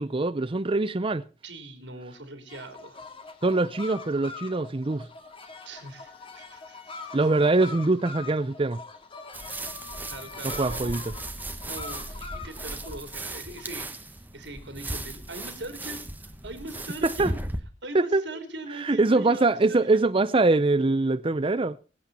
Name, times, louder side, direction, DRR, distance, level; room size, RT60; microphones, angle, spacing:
voice 1, 0.0-1.2 3.4-5.1 7.1-8.8 10.4-11.0 17.0-17.3 18.1-18.2 18.8-21.8, right 2 dB, 30° right, 0.6 m, -23 dB
voice 2, 1.4-3.1 5.6-7.1 10.0-11.1 11.4-17.4 17.8-20.1, right 2 dB, 85° right, 3.7 m, -41 dB
sound 1, 2.5-13.9, left 4 dB, 30° left, 2.2 m, -43 dB
sound 2, 9.3-17.6, right 1 dB, 10° right, 1.4 m, -37 dB
23.5 x 8.7 x 4.2 m
head